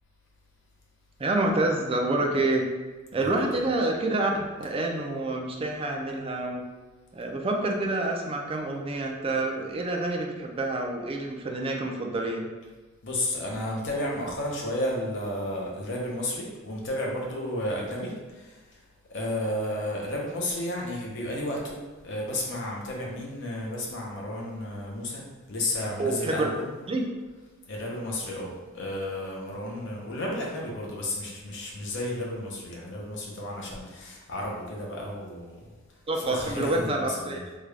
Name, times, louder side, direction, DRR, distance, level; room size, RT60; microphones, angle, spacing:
voice 1, 1.2-2.6 3.1-6.6 7.1-12.5 26.0-26.5 26.9-27.0 36.1-37.4, right 2 dB, 25° right, 1 dB, 0.4 m, -27 dB
voice 2, 3.2-3.7 13.0-18.8 19.1-26.7 27.6-35.7 36.1-37.4, left 1 dB, 60° left, -2 dB, 0.8 m, -32 dB
3.6 x 2.3 x 3.2 m, 1.3 s
head